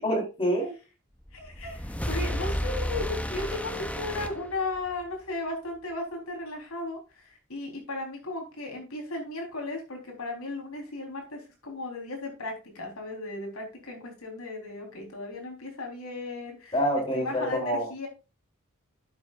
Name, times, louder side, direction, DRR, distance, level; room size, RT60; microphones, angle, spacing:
voice 1, 0.0-0.7 16.7-17.9, equal, 25° left, 2 dB, 3.3 m, -26 dB
voice 2, 1.3-16.8 17.1-18.1, left 2 dB, 85° left, 2 dB, 3.9 m, -36 dB
sound 1, 1.3-5.1, equal, 5° left, 0.7 m, -32 dB
12.0 x 7.6 x 2.5 m, 0.30 s
head